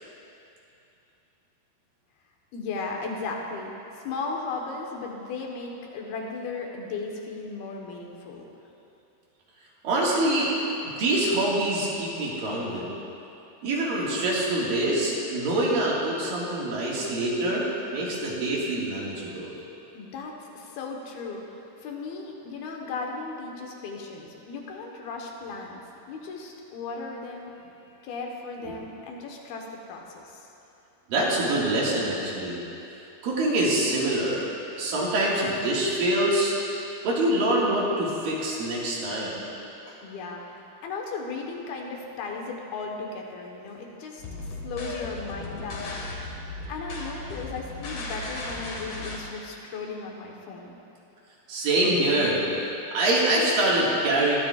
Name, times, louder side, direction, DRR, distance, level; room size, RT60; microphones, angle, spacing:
voice 1, 2.5-8.5 19.9-25.8 26.1-27.5 28.0-30.5 40.0-45.9 46.7-50.8, left 4 dB, 75° left, 0 dB, 3.0 m, -36 dB
voice 2, 9.8-10.5 11.0-12.9 13.6-17.7 17.9-19.5 31.1-32.6 33.2-34.5 34.8-36.5 37.0-39.4 51.5-52.4 52.9-54.4, right 1 dB, 65° right, -5 dB, 3.4 m, -25 dB
sound 1, 44.2-49.2, left 2 dB, 55° left, 2.5 m, -36 dB
22.0 x 13.0 x 2.4 m, 2.8 s
omnidirectional pair, 4.5 m